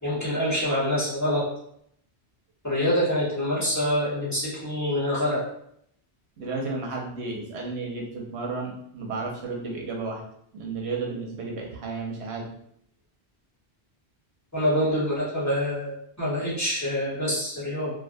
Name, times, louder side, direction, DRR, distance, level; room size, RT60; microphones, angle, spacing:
voice 1, 0.0-1.4 2.6-5.4 14.5-17.9, equal, 15° left, -9 dB, 1.0 m, -26 dB
voice 2, 6.4-10.2 10.5-12.5, right 3 dB, 80° right, -1 dB, 0.9 m, -32 dB
2.4 x 2.4 x 2.5 m, 0.70 s
omnidirectional pair, 1.1 m